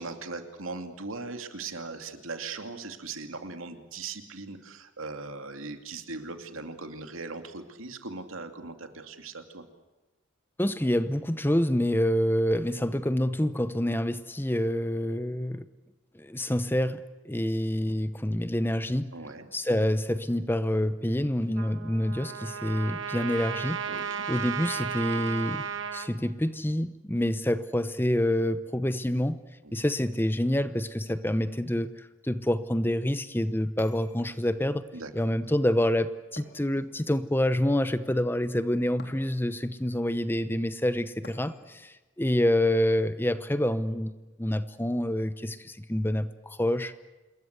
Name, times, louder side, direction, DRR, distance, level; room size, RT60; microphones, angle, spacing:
voice 1, 0.0-9.7 19.1-19.5 23.9-24.0 29.6-29.7 34.9-35.1, right 3 dB, 85° right, 7 dB, 2.7 m, -39 dB
voice 2, 10.6-15.7 16.1-19.1 19.5-23.8 24.3-25.6 25.9-29.4 29.7-34.8 35.1-44.1 44.4-46.9, left 1 dB, 10° left, 13 dB, 0.8 m, -27 dB
Trumpet, 21.6-26.1, right 7 dB, 65° right, 2.0 m, -34 dB
sound 1, 33.8-34.7 36.4-37.3 39.0-39.6 41.2-41.9, left 1 dB, 50° left, 3.9 m, -51 dB
27.5 x 21.5 x 8.2 m, 1.2 s
head